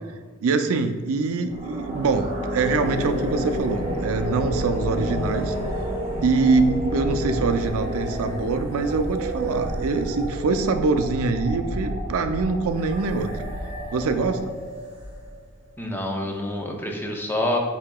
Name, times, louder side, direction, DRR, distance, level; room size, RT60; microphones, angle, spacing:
voice 1, 0.4-5.5 6.2-13.3 13.9-14.4, right 4 dB, 70° right, 8 dB, 0.4 m, -24 dB
sound 1, 1.4-15.5, equal, 30° right, 1.1 m, -30 dB
voice 2, 15.8-17.6, left 1 dB, 10° left, 1 dB, 0.6 m, -27 dB
8.3 x 2.8 x 2.2 m, 1.5 s
head